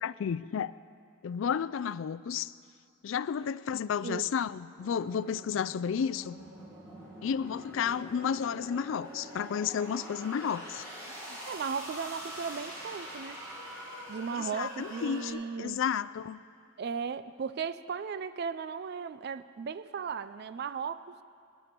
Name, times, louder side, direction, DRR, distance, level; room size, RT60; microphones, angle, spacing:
voice 1, 0.0-0.7 1.2-2.5 3.0-6.4 7.2-10.8 14.3-16.4, left 7 dB, 65° left, 16 dB, 0.3 m, -32 dB
sound 1, 4.8-15.3, equal, 15° right, 4.4 m, -45 dB
voice 2, 11.1-13.4 14.1-15.8 16.8-21.0, right 6 dB, 50° right, 14 dB, 0.4 m, -36 dB
20.5 x 11.0 x 4.5 m, 2.3 s
head